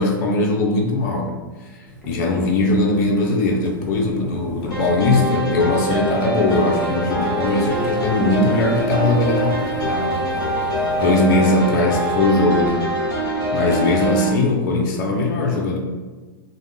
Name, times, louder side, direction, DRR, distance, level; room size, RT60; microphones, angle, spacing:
voice 1, 0.0-1.4 2.1-9.6 9.8-10.2 11.0-12.8 13.5-15.8, left 2 dB, 50° left, 0 dB, 0.5 m, -20 dB
Boiling, 1.9-11.2, right 1 dB, 15° left, 0.7 m, -40 dB
sound 1, 3.8-14.9, equal, 20° right, 0.7 m, -35 dB
sound 2, 4.7-14.3, right 1 dB, 30° left, 1.2 m, -23 dB
2.5 x 2.1 x 3.3 m, 1.3 s
hypercardioid pair, 105°, 12 cm